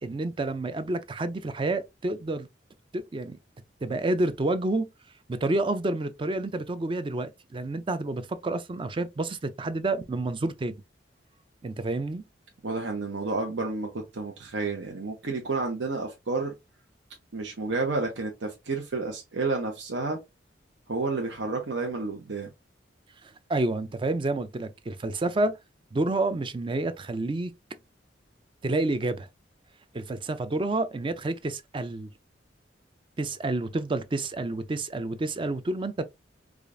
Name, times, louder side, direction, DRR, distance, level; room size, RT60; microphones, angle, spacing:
voice 1, 0.0-2.5 2.9-3.4 3.8-4.9 5.3-10.7 11.6-12.2 23.2-25.6 25.9-27.5 28.6-29.3 29.9-32.1 33.2-36.1, right 2 dB, 25° right, 0.4 m, -29 dB
voice 2, 12.6-16.5 17.3-20.2 20.9-22.5, right 3 dB, 80° right, 0.8 m, -30 dB
4.9 x 2.4 x 2.5 m
head